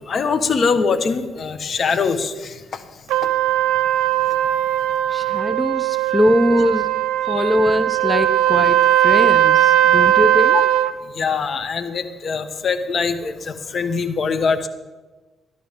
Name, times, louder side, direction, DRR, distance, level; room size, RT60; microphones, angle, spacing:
voice 1, 0.1-2.8 7.3-7.5 10.5-10.6 11.1-14.7, left 5 dB, 55° left, 9 dB, 1.3 m, -23 dB
Trumpet, 3.1-10.9, right 12 dB, 85° right, 0.6 m, -18 dB
voice 2, 5.1-7.0 7.2-10.6, left 1 dB, 20° left, 9 dB, 0.8 m, -21 dB
16.5 x 12.5 x 3.7 m, 1.2 s
supercardioid pair, 65°, 0 cm